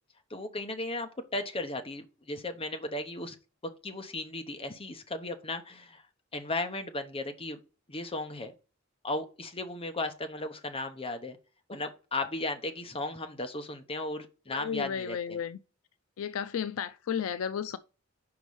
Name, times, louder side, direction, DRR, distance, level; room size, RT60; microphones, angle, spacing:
voice 1, 0.3-3.4 3.8-6.0 6.3-7.6 7.9-8.5 9.0-11.4 11.7-15.4, left 2 dB, 25° left, 0.8 m, -36 dB
voice 2, 14.5-15.6 16.2-17.8, left 7 dB, 75° left, 0.4 m, -33 dB
5.2 x 4.7 x 5.4 m
head